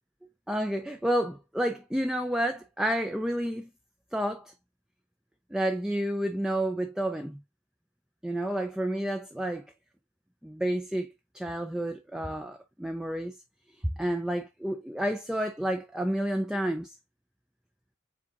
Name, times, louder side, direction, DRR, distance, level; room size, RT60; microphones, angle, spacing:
voice 1, 0.5-3.7 4.1-4.5 5.5-7.4 8.2-9.7 10.4-13.4 14.0-16.9, right 1 dB, 5° right, 0.3 m, -30 dB
5.1 x 3.8 x 2.3 m
head